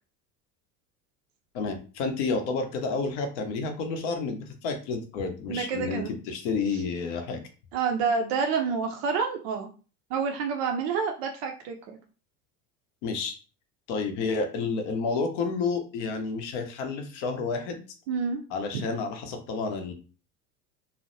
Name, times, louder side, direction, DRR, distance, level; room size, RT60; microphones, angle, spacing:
voice 1, 1.5-7.4 13.0-13.3 13.9-17.8 18.5-19.9, left 4 dB, 50° left, 6 dB, 0.7 m, -30 dB
voice 2, 5.5-6.1 7.7-9.7 10.1-11.8 18.1-18.4, right 5 dB, 45° right, 3 dB, 0.4 m, -28 dB
2.6 x 2.1 x 2.6 m, 0.37 s
figure-of-eight pair, 70°, 47 cm